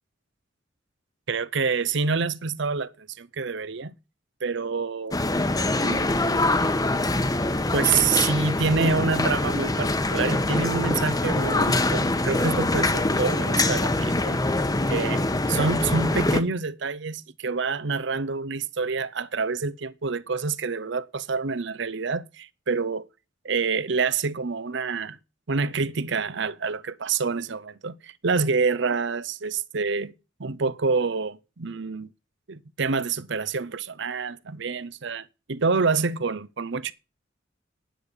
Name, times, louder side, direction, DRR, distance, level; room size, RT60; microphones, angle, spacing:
voice 1, 1.3-3.9 4.4-5.2 5.8-6.5 7.7-14.4 14.9-15.2 15.5-23.1 23.4-25.2 25.5-30.1 30.4-32.1 32.5-36.9, right 4 dB, 65° right, 0.8 m, -27 dB
sound 1, 5.1-16.4, left 2 dB, 20° left, 1.0 m, -24 dB
9.9 x 9.3 x 6.8 m
head